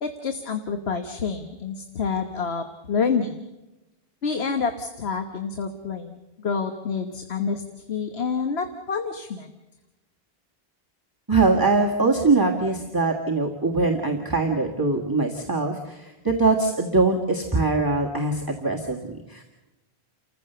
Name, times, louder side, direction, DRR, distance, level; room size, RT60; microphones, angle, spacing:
voice 1, 0.0-3.4 4.2-7.6 7.9-9.5, left 5 dB, 85° left, 6 dB, 1.4 m, -28 dB
voice 2, 11.3-19.4, right 3 dB, 20° right, -1 dB, 1.7 m, -22 dB
29.5 x 15.0 x 6.8 m, 1.0 s
omnidirectional pair, 1.0 m